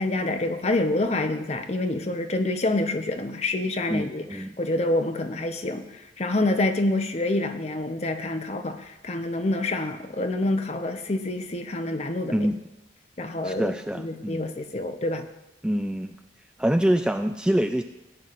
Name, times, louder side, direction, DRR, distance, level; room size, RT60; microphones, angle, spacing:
voice 1, 0.0-12.5 13.2-15.3, left 2 dB, 35° left, 7 dB, 0.7 m, -27 dB
voice 2, 3.9-4.6 12.3-12.6 13.4-14.5 15.6-16.2 16.6-17.8, equal, 5° right, 6 dB, 0.3 m, -25 dB
16.5 x 9.7 x 2.5 m, 0.99 s
head